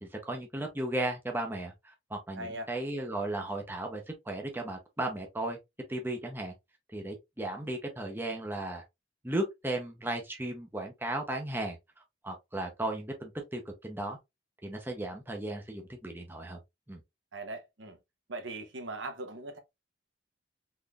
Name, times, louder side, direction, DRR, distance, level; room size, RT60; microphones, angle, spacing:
voice 1, 0.0-5.6 5.9-6.5 6.9-8.8 9.2-11.8 12.2-14.2 14.6-16.6 16.9-17.0, right 1 dB, 10° right, 0.6 m, -35 dB
voice 2, 2.4-2.7 17.3-18.0 18.3-19.6, right 2 dB, 70° right, 0.8 m, -40 dB
3.8 x 3.1 x 2.3 m
head